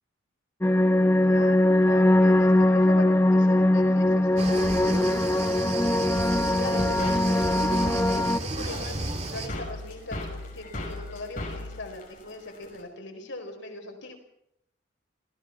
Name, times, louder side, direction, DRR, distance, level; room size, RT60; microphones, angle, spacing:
sound 1, 0.6-8.4, left 1 dB, 15° left, 0.8 m, -21 dB
voice 1, 1.2-6.0 6.5-7.7 8.1-10.2 10.5-14.2, left 2 dB, 80° left, 4 dB, 4.7 m, -40 dB
sound 2, 4.4-9.5, right 2 dB, 35° right, 2.3 m, -33 dB
sound 3, 6.2-12.8, left 1 dB, 45° left, 6.2 m, -37 dB
26.0 x 17.5 x 6.0 m, 0.75 s
head